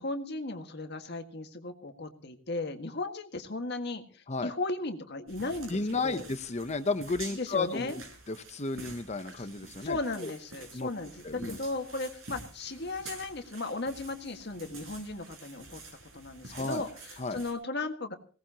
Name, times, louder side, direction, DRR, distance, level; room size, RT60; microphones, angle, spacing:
voice 1, 0.0-6.2 7.3-8.0 9.8-15.8 16.1-18.1, left 2 dB, 55° left, 6 dB, 1.8 m, -36 dB
sound 1, 5.3-17.5, right 3 dB, 85° right, 6.0 m, -48 dB
voice 2, 5.7-8.0 8.3-10.3 10.7-10.9 11.2-11.6 16.5-16.8 17.2-17.4, left 3 dB, 35° left, 11 dB, 0.8 m, -33 dB
21.5 x 18.0 x 2.9 m, 0.38 s
head